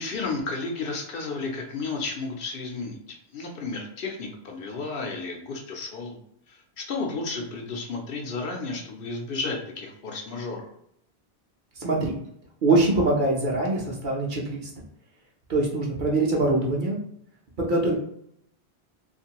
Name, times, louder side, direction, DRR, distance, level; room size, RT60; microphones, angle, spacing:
voice 1, 0.0-3.0 3.3-6.2 6.5-10.7, left 3 dB, 65° left, 1 dB, 0.7 m, -32 dB
voice 2, 11.8-12.1 12.6-14.7 15.5-17.0 17.6-18.0, right 2 dB, 55° right, -2 dB, 0.8 m, -23 dB
2.6 x 2.5 x 2.8 m, 0.71 s
omnidirectional pair, 1.1 m